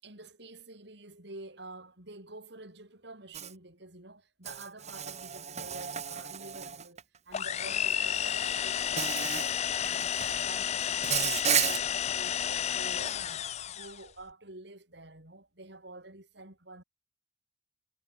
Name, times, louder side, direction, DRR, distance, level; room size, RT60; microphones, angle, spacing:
voice 1, 0.0-9.5 9.8-16.8, right 2 dB, 65° right, 5.3 m, -49 dB
Insect, 3.3-3.5 4.5-7.0 8.2-8.3 9.0-9.5 9.8-10.3 11.0-11.8, right 8 dB, 40° right, 1.7 m, -32 dB
sound 1, 7.3-14.0, left 9 dB, 35° left, 0.4 m, -31 dB
head